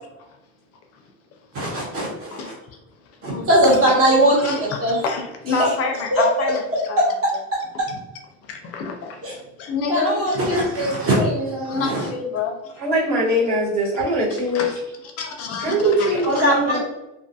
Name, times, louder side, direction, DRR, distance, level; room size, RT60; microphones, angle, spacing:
voice 1, 1.5-2.5 3.2-4.5 4.8-5.0 5.6-5.7 6.1-6.2 7.0-7.1 9.2-9.3 9.9-12.1 16.2-16.8, right 1 dB, 45° right, -3 dB, 1.0 m, -20 dB
voice 2, 3.0-3.9 4.3-7.0 8.4-10.5 11.6-12.8 14.5-16.5, left 4 dB, 50° left, 4 dB, 0.4 m, -29 dB
voice 3, 12.8-14.7 15.6-16.8, right 1 dB, 65° right, -6 dB, 1.3 m, -21 dB
2.4 x 2.3 x 2.7 m, 0.92 s
cardioid pair, 175°, 31 cm